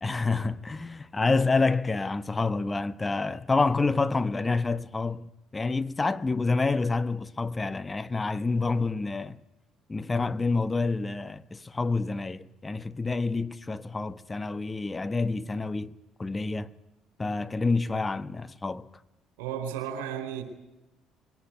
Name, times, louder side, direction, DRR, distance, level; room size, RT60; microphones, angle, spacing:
voice 1, 0.0-9.4 9.9-16.7 17.2-18.9, left 3 dB, 20° left, 1.0 m, -28 dB
voice 2, 19.4-20.4, right 9 dB, 70° right, 4.3 m, -33 dB
23.0 x 18.0 x 9.4 m
figure-of-eight pair, 50°, 0 cm